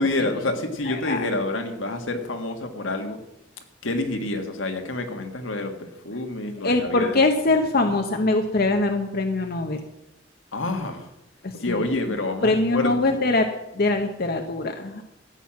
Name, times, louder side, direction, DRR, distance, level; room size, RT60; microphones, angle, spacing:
voice 1, 0.0-3.2 3.8-7.2 10.5-11.1 11.5-13.2, left 2 dB, 80° left, 4 dB, 1.9 m, -28 dB
voice 2, 0.8-1.3 6.6-9.8 11.4-11.9 12.4-13.5 13.7-15.0, left 2 dB, 50° left, 4 dB, 1.0 m, -23 dB
14.0 x 9.2 x 6.0 m, 0.88 s
head